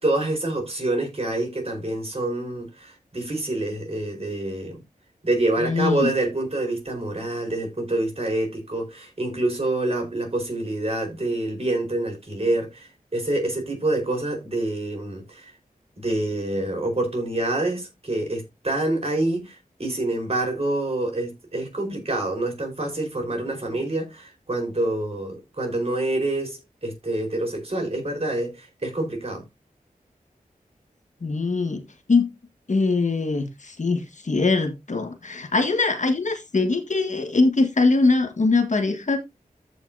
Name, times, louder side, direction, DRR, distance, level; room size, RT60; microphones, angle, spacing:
voice 1, 0.0-4.8 5.2-15.5 16.0-29.4, right 2 dB, 45° right, 4.6 m, -27 dB
voice 2, 5.6-6.1 31.2-31.8 32.1-32.3 32.7-39.2, left 3 dB, 55° left, 1.7 m, -22 dB
14.0 x 5.6 x 2.7 m
wide cardioid pair, 70°, 15 cm